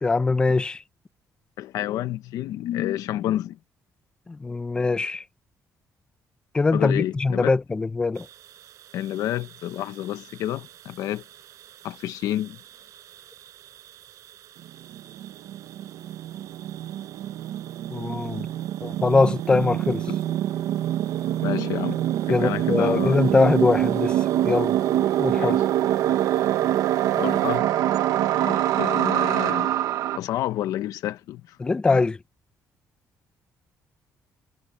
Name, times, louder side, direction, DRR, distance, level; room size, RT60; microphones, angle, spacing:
voice 1, 0.0-0.8 4.4-5.2 6.5-8.3 17.9-18.5 18.8-20.0 22.3-24.2 24.4-24.7 25.2-25.6 31.6-32.2, left 3 dB, 15° left, 0.7 m, -22 dB
voice 2, 1.6-3.6 6.7-7.5 8.9-11.2 11.8-12.6 20.1-20.2 21.4-22.0 22.3-23.2 25.3-25.6 27.1-27.8 28.4-29.7 30.1-31.6 31.9-32.0, left 13 dB, 90° left, 1.1 m, -29 dB
sound 1, 8.1-27.6, right 12 dB, 65° right, 6.2 m, -50 dB
sound 2, 14.7-14.8 14.9-30.2, right 12 dB, 85° right, 1.3 m, -25 dB
cardioid pair, 170°, 6 cm